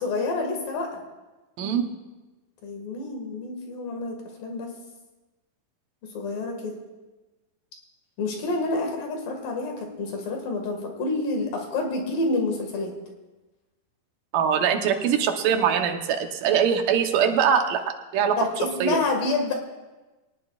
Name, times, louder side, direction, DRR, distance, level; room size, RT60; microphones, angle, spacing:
voice 1, 0.0-1.0 2.6-4.7 6.1-6.8 8.2-12.9 18.4-19.5, left 2 dB, 65° left, 2 dB, 3.6 m, -28 dB
voice 2, 14.3-17.8 18.1-18.4 18.8-19.0, right 7 dB, 70° right, 5 dB, 2.4 m, -22 dB
21.5 x 19.0 x 2.5 m, 1.1 s
omnidirectional pair, 4.4 m